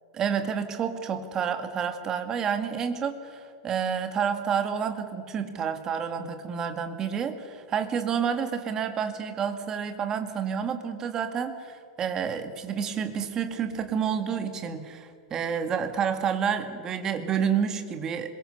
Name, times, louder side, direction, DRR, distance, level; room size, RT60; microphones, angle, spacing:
voice 1, 0.1-18.3, right 7 dB, 20° right, 7 dB, 1.9 m, -29 dB
26.0 x 22.5 x 6.7 m, 2.2 s
supercardioid pair, 160°, 3 cm